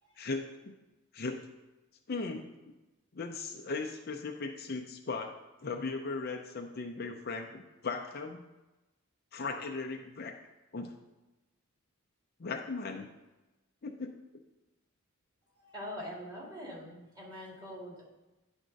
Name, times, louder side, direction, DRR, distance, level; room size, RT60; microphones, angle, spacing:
voice 1, 0.2-0.7 1.1-1.4 2.1-2.5 3.1-8.4 9.3-10.4 10.7-10.9 12.4-13.1 13.8-14.2, left 3 dB, 45° left, 3 dB, 0.5 m, -38 dB
voice 2, 15.6-18.1, equal, 20° right, -4 dB, 2.0 m, -44 dB
10.0 x 3.6 x 5.2 m, 1.1 s
head